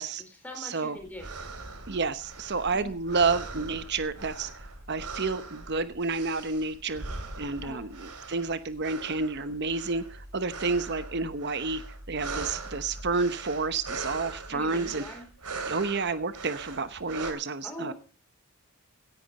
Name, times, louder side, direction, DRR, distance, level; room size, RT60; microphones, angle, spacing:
voice 1, 0.0-1.6 2.7-2.9 7.6-7.8 14.5-15.3 17.6-17.9, left 1 dB, 5° left, 3 dB, 4.1 m, -43 dB
voice 2, 0.6-1.0 1.9-4.5 4.9-7.0 7.4-11.8 12.1-15.0 15.7-17.9, right 4 dB, 50° right, 12 dB, 0.9 m, -30 dB
sound 1, 1.0-17.3, right 3 dB, 90° right, 2.8 m, -41 dB
17.0 x 10.5 x 4.1 m, 0.39 s
head